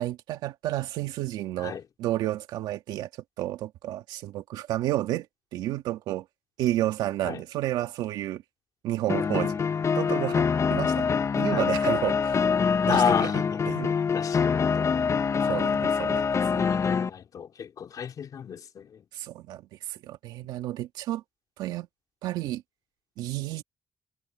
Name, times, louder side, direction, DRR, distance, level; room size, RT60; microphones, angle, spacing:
voice 1, 0.0-3.1 3.4-5.3 5.5-6.3 6.6-8.4 8.8-9.6 9.9-11.1 11.4-12.5 12.8-13.9 15.4-16.6 19.1-21.2 21.6-21.9 22.2-22.6 23.2-23.6, right 14 dB, 85° right, 2.1 m, -31 dB
sound 1, 9.1-17.1, left 6 dB, 45° left, 1.0 m, -25 dB
voice 2, 12.9-13.6 14.1-14.9 15.4-15.7 16.6-19.0, left 7 dB, 60° left, 2.8 m, -32 dB
supercardioid pair, 65°, 7 cm